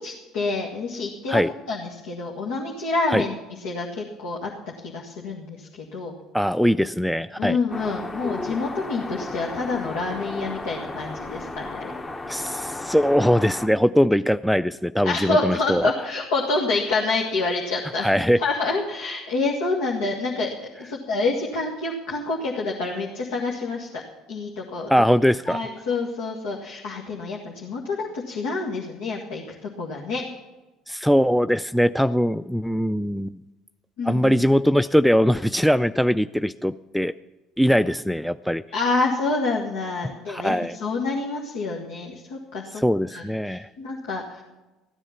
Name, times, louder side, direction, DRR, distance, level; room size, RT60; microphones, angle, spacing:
voice 1, 0.0-1.4 1.7-3.3 3.6-4.5 4.8-6.1 7.4-11.9 15.0-18.1 18.4-20.5 20.8-24.0 24.3-24.9 25.5-30.2 34.0-34.3 38.7-42.8 43.1-44.4, left 3 dB, 80° left, -2 dB, 1.8 m, -27 dB
voice 2, 6.3-7.6 12.3-15.9 18.0-18.4 24.9-25.6 30.9-33.4 34.0-37.1 37.6-38.6 40.3-40.7 42.8-43.7, equal, ahead, 12 dB, 0.4 m, -21 dB
sound 1, 7.7-13.7, left 2 dB, 25° left, 1.2 m, -34 dB
16.0 x 10.0 x 5.9 m, 1.1 s
hypercardioid pair, 75°, 0 cm